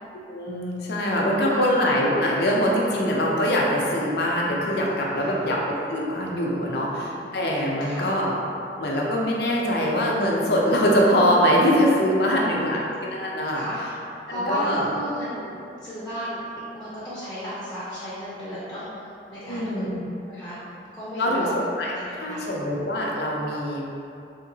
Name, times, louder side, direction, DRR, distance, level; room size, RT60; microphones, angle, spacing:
voice 1, 0.3-8.3 8.8-13.6 14.3-14.9 19.4-20.0 21.2-23.8, equal, 60° left, -3 dB, 0.5 m, -23 dB
voice 2, 6.7-7.3 7.8-8.1 12.2-12.8 13.5-13.8 14.3-16.5 16.7-19.7 20.2-20.6 20.9-21.5 22.0-22.6, equal, 10° left, -12 dB, 0.6 m, -34 dB
3.7 x 2.8 x 2.7 m, 2.7 s
head